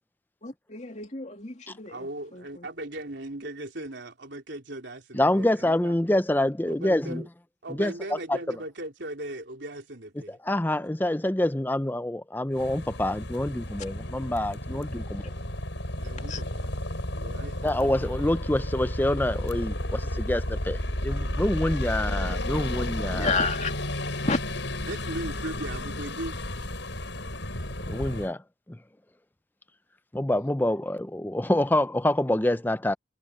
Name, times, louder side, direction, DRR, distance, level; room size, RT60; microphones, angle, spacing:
voice 1, 0.4-2.1 2.3-2.4 16.3-16.4 23.1-23.7 24.2-24.4, left 3 dB, 35° left, 2.5 m, -30 dB
voice 2, 1.9-6.0 6.7-7.3 7.6-10.4 14.7-14.9 16.0-16.7 17.2-17.9 24.9-26.7, right 1 dB, 65° right, 3.7 m, -38 dB
voice 3, 5.1-7.2 7.8-7.9 8.3-8.4 10.3-15.2 17.6-23.3 27.9-28.4 28.7-28.8 30.1-32.9, left 1 dB, 10° left, 0.5 m, -26 dB
sound 1, 12.6-28.3, left 1 dB, 70° left, 6.4 m, -32 dB
head